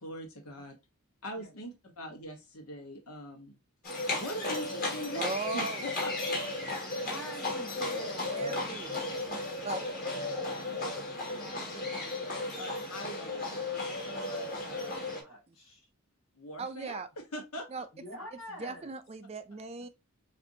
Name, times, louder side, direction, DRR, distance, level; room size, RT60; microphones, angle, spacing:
voice 1, 0.0-0.8 1.2-3.6 3.9-6.3 10.4-10.9 11.3-12.2 12.6-15.0 16.4-17.0 17.3-17.7, equal, 85° left, 1.2 m, -43 dB
Livestock farm animals working animals, 3.8-15.2, left 2 dB, 40° left, 1.8 m, -35 dB
voice 2, 5.2-5.8 8.2-9.0 9.6-10.0 15.5-15.6 16.6-17.1 17.7-17.9 18.6-19.9, right 4 dB, 30° right, 0.4 m, -38 dB
voice 3, 7.0-8.6 9.3-9.4 14.4-14.8 15.2-15.9 17.9-18.9, equal, 60° left, 2.6 m, -45 dB
6.7 x 2.6 x 2.7 m
head